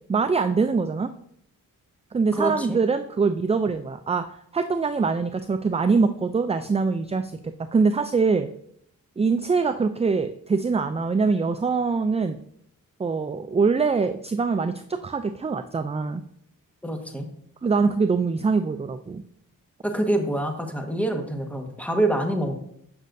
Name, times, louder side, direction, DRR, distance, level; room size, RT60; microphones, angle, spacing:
voice 1, 0.1-1.1 2.1-4.3 4.5-8.5 9.2-12.4 13.0-16.2 17.6-19.2, right 4 dB, 20° right, 9 dB, 0.4 m, -23 dB
voice 2, 2.3-2.8 16.8-17.3 19.8-22.5, right 1 dB, 5° left, 3 dB, 1.4 m, -26 dB
8.6 x 6.4 x 2.6 m, 0.69 s
cardioid pair, 55°, 35 cm